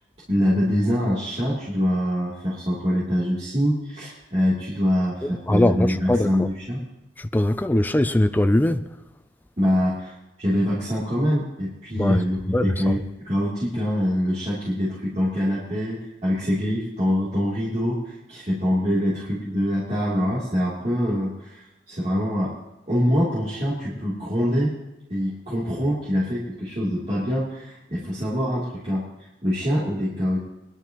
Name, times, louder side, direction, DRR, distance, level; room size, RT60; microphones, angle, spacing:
voice 1, 0.3-6.8 9.6-10.1 10.4-22.5 22.9-24.8 25.1-29.1 29.4-30.4, equal, 35° right, 3.1 m, -24 dB
voice 2, 5.2-6.5 7.2-8.9 12.0-12.2 12.5-13.0, left 1 dB, 10° left, 0.3 m, -21 dB
22.5 x 11.5 x 3.0 m
head